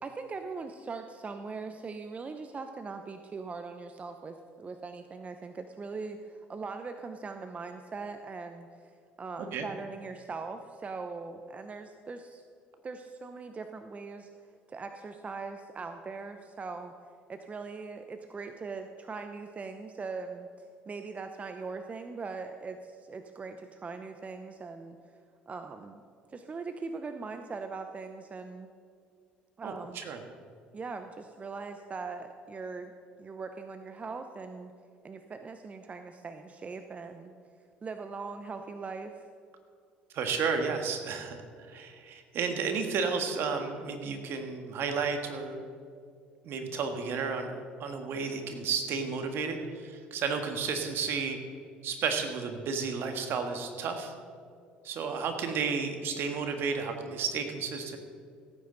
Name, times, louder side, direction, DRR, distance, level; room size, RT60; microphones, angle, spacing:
voice 1, 0.0-12.4 12.8-16.9 17.3-25.2 25.5-28.7 29.6-30.0 30.7-32.9 33.2-34.7 35.0-37.3 37.8-39.3, right 4 dB, 30° right, 7 dB, 0.7 m, -41 dB
voice 2, 29.6-30.2 40.1-45.6 46.4-47.5 47.8-51.4 51.8-54.1 54.8-58.0, right 5 dB, 60° right, 6 dB, 1.6 m, -32 dB
16.5 x 9.4 x 4.0 m, 2.3 s
hypercardioid pair, 70°, 4 cm